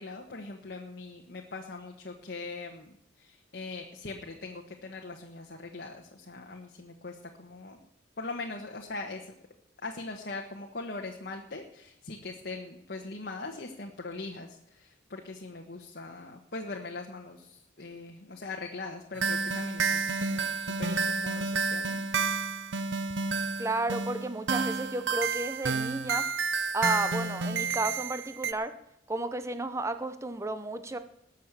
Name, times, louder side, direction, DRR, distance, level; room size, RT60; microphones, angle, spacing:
voice 1, 0.0-7.8 8.2-9.3 9.8-22.1, left 3 dB, 55° left, 2 dB, 1.2 m, -41 dB
sound 1, 19.2-28.5, right 4 dB, 75° right, 0.8 m, -30 dB
voice 2, 23.6-26.3 26.7-28.7 29.1-31.0, right 2 dB, 15° right, 10 dB, 0.6 m, -32 dB
19.5 x 6.5 x 7.3 m, 0.80 s
head